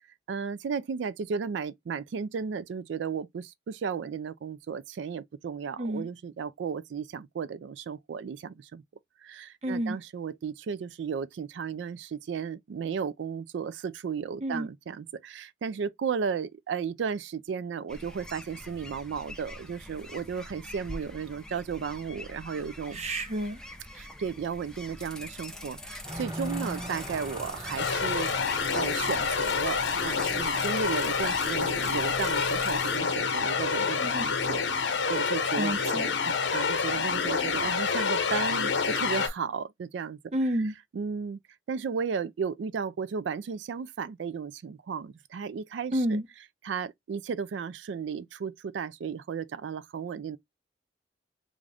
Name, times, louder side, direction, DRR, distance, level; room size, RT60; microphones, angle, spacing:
voice 1, 0.3-8.8 9.2-23.0 23.9-40.2 40.9-41.4 41.7-46.2 46.6-50.4, right 6 dB, 75° right, 0.3 m, -34 dB
voice 2, 5.8-6.1 9.6-10.0 14.4-14.7 22.9-23.6 34.0-34.3 35.6-36.1 40.3-40.7 45.9-46.3, right 1 dB, 35° right, 0.7 m, -30 dB
sound 1, 17.9-33.0, left 1 dB, 5° left, 0.5 m, -43 dB
sound 2, 26.0-34.3, right 1 dB, 20° right, 1.3 m, -42 dB
sound 3, 27.8-39.3, left 5 dB, 80° left, 0.8 m, -28 dB
3.6 x 2.5 x 3.3 m
head